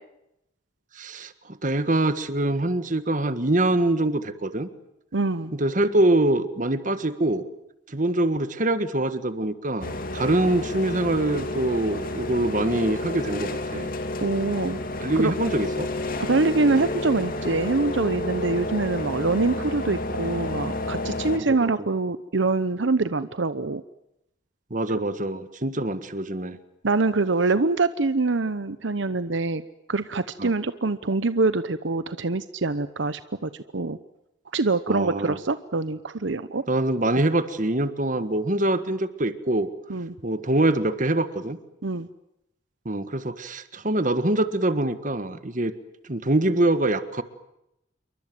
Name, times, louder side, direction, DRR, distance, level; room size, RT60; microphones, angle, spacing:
voice 1, 1.0-1.3 1.6-4.7 5.5-7.4 7.9-13.9 15.0-15.9 21.3-21.7 24.7-26.6 30.4-30.5 34.9-35.4 36.7-39.7 40.2-41.6 42.8-45.7 46.1-47.2, right 1 dB, 45° right, 11 dB, 1.6 m, -24 dB
voice 2, 5.1-5.5 14.2-14.8 15.2-15.3 16.3-23.8 26.8-29.6 29.9-34.0 34.5-36.6 39.9-40.1 41.8-42.1, right 3 dB, 75° right, 13 dB, 0.9 m, -24 dB
sound 1, 9.8-21.4, left 1 dB, 50° left, 2.6 m, -30 dB
28.5 x 23.5 x 7.8 m, 0.85 s
head